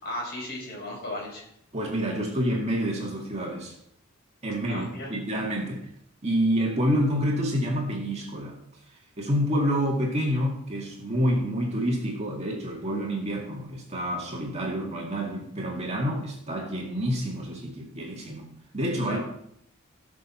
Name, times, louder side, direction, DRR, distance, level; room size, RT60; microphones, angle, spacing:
voice 1, 0.0-1.5 4.7-5.1 19.0-19.2, left 1 dB, 45° left, -2 dB, 5.2 m, -35 dB
voice 2, 1.7-3.7 4.4-5.8 6.2-8.6 9.2-18.5 18.7-19.2, equal, 30° right, -1 dB, 2.0 m, -28 dB
17.0 x 6.7 x 4.4 m, 0.73 s
head